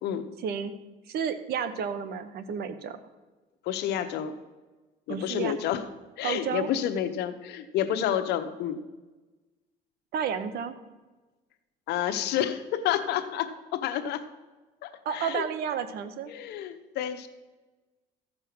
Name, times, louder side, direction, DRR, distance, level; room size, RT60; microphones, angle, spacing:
voice 1, 0.4-0.7 1.1-3.0 5.1-5.5 6.2-6.7 10.1-10.7 15.0-16.3, right 7 dB, 70° right, 12 dB, 1.0 m, -31 dB
voice 2, 3.6-4.4 5.1-5.8 6.2-8.8 11.9-14.2 14.8-15.4 16.3-17.3, left 10 dB, 80° left, 8 dB, 0.9 m, -29 dB
14.5 x 5.4 x 6.0 m, 1.2 s
cardioid pair, 110°, 17 cm